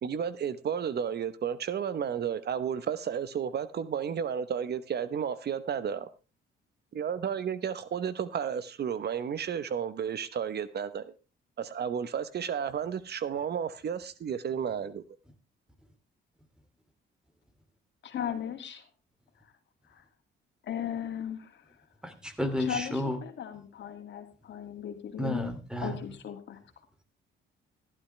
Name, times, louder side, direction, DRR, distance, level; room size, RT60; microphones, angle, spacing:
voice 1, 0.0-6.1 6.9-11.1 11.6-15.0, right 8 dB, 55° right, 1.1 m, -32 dB
voice 2, 18.0-18.9 19.4-19.5 19.9-20.0 20.6-21.8 22.6-26.6, left 9 dB, 65° left, 2.5 m, -37 dB
voice 3, 22.0-23.2 25.2-25.9, left 1 dB, 5° right, 2.8 m, -31 dB
14.5 x 12.0 x 3.4 m
cardioid pair, 90°, 20 cm